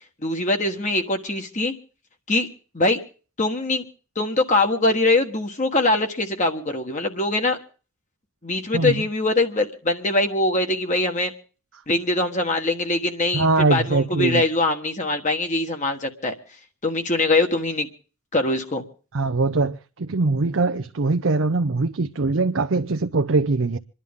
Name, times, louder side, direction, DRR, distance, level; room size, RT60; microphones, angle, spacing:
voice 1, 0.2-1.7 2.3-2.5 2.7-3.0 3.4-3.8 4.1-7.6 8.4-11.3 11.9-16.3 16.8-17.9 18.3-18.9, left 2 dB, 35° left, 1.4 m, -22 dB
voice 2, 13.3-14.4 19.1-23.8, right 3 dB, 60° right, 0.6 m, -22 dB
27.5 x 11.0 x 3.6 m
head